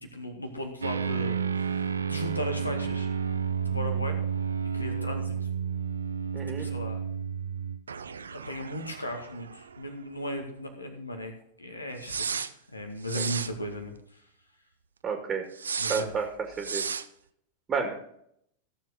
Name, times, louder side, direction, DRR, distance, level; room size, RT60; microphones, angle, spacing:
voice 1, 0.0-3.1 3.6-4.2 4.7-5.3 6.6-7.0 8.3-11.3 11.6-13.9 15.8-16.1, left 1 dB, 85° left, 4 dB, 2.0 m, -36 dB
sound 1, 0.8-10.0 10.2-10.3 12.0-12.5 13.0-13.5 15.6-16.0 16.6-17.0, right 6 dB, 70° right, 0.5 m, -31 dB
voice 2, 6.3-6.7 13.2-13.3 15.0-15.4 15.9-16.3 16.6-16.8 17.7-18.0, right 5 dB, 25° right, 4 dB, 2.0 m, -30 dB
15.5 x 7.3 x 4.0 m, 0.71 s
figure-of-eight pair, 90°, 0 cm